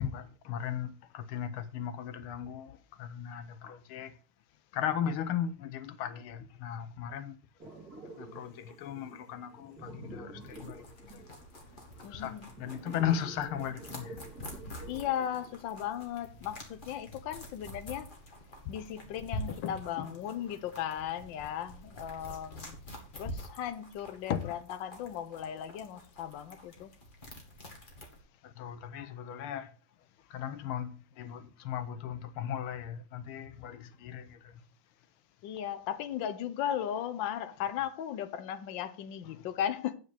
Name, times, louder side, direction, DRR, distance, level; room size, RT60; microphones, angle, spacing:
voice 1, 0.0-4.2 4.7-7.4 8.2-11.2 12.0-14.2 14.5-14.6 18.6-18.8 19.5-20.1 24.3-24.6 28.4-29.7 30.3-34.6 39.2-39.5, left 9 dB, 85° left, 1.7 m, -37 dB
sound 1, 7.6-16.0, right 2 dB, 45° right, 3.9 m, -49 dB
sound 2, 10.4-28.2, left 1 dB, 25° left, 2.1 m, -47 dB
voice 2, 12.0-12.5 14.9-18.1 18.7-22.8 23.2-26.9 35.4-39.9, left 10 dB, 70° left, 1.4 m, -36 dB
9.5 x 8.1 x 4.2 m
omnidirectional pair, 2.3 m